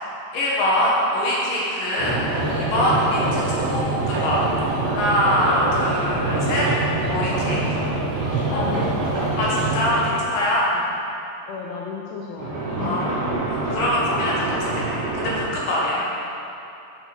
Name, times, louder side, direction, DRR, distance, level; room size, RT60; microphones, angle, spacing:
voice 1, 0.0-2.2 2.5-4.4 4.9-6.7 7.1-7.6 8.5-8.6 9.4-10.7 12.8-16.1, left 1 dB, 65° left, -6 dB, 2.7 m, -23 dB
sound 1, 2.0-10.2 12.4-15.4, right 2 dB, 55° right, 2.2 m, -25 dB
voice 2, 8.4-9.3 10.7-11.0 11.5-13.5, left 5 dB, 85° left, -3 dB, 2.3 m, -34 dB
7.0 x 6.6 x 5.9 m, 2.8 s
omnidirectional pair, 5.0 m